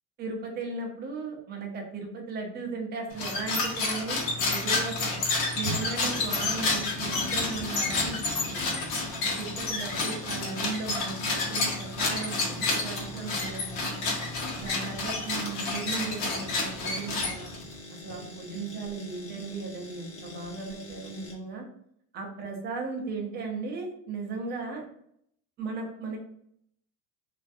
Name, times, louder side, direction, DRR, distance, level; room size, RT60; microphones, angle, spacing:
voice 1, 0.2-5.2 5.5-8.6 9.2-14.1 14.6-17.5 18.0-21.6 22.1-24.9 25.6-26.2, right 4 dB, 25° right, 1 dB, 0.4 m, -36 dB
sound 1, 3.1-17.7, left 3 dB, 65° left, 0.8 m, -30 dB
sound 2, 5.6-21.3, left 1 dB, 40° left, 0.8 m, -44 dB
2.4 x 2.3 x 2.5 m, 0.70 s
cardioid pair, 170°, 38 cm